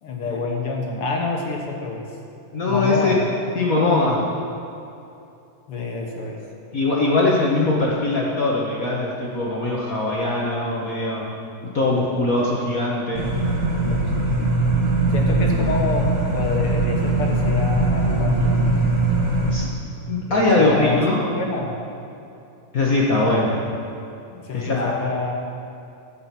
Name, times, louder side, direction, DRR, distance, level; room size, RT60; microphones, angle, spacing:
voice 1, 0.0-2.1 2.6-3.7 5.7-6.4 13.8-14.6 15.1-18.6 20.3-21.7 24.3-25.4, left 3 dB, 55° left, 0 dB, 1.8 m, -27 dB
voice 2, 2.5-3.1 3.5-4.2 6.7-11.3 11.7-13.3 19.5-19.7 20.1-21.2 22.7-23.6 24.5-24.9, left 2 dB, 70° left, -4 dB, 0.8 m, -21 dB
sound 1, 13.1-19.5, right 2 dB, 30° right, 1.5 m, -21 dB
15.0 x 8.7 x 6.0 m, 2.7 s
omnidirectional pair, 3.6 m